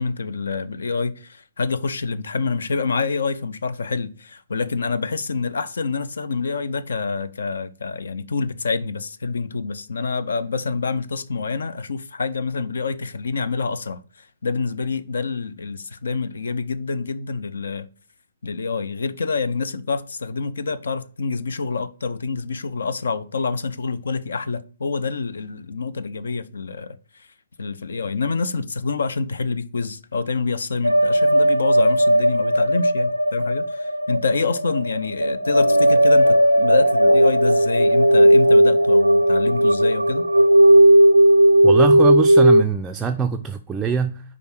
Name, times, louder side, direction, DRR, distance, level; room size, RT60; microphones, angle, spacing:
voice 1, 0.0-17.9 18.4-27.3 27.6-40.3, left 4 dB, 65° left, 0.5 m, -27 dB
sound 1, 30.8-42.6, right 1 dB, 85° right, 0.3 m, -15 dB
voice 2, 41.6-44.2, right 5 dB, 10° right, 0.4 m, -23 dB
5.2 x 4.8 x 6.1 m
figure-of-eight pair, 125°, 0 cm